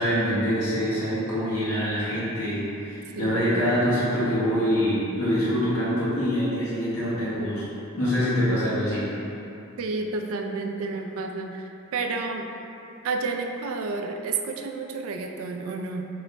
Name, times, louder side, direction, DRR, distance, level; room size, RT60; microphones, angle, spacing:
voice 1, 0.0-7.6 8.0-9.1, equal, 85° left, -10 dB, 1.4 m, -25 dB
voice 2, 3.1-3.5 9.8-12.5 13.0-16.1, right 3 dB, 70° right, 4 dB, 0.3 m, -30 dB
3.3 x 3.0 x 3.8 m, 2.8 s
head